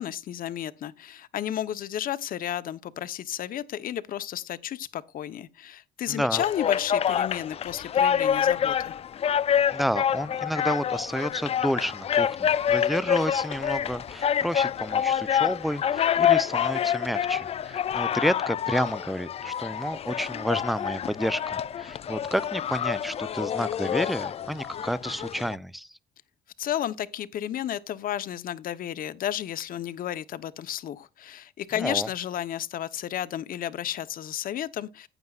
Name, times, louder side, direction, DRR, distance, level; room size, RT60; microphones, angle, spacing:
voice 1, 0.0-8.9 26.6-35.1, left 11 dB, 55° left, 1.0 m, -32 dB
voice 2, 6.1-6.4 9.7-25.9 31.8-32.1, equal, ahead, 0.6 m, -30 dB
sound 1, 6.3-25.5, left 9 dB, 35° left, 0.4 m, -27 dB
15.0 x 9.3 x 2.4 m
cardioid pair, 110°, 17 cm